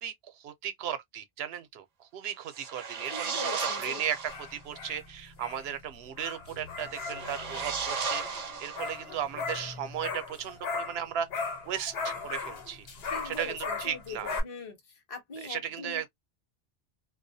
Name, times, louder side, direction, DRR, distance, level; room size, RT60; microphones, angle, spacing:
voice 1, 0.0-11.3 11.7-12.9 13.2-14.3 15.4-16.1, right 9 dB, 75° right, 0.8 m, -36 dB
sound 1, 2.5-4.5 6.9-9.2, right 5 dB, 50° right, 0.6 m, -35 dB
voice 2, 3.1-4.0 13.1-14.8 15.1-16.1, left 3 dB, 35° left, 0.8 m, -41 dB
sound 2, 4.0-11.0 11.3-14.4, left 4 dB, 75° left, 1.0 m, -38 dB
2.3 x 2.1 x 2.6 m
omnidirectional pair, 1.0 m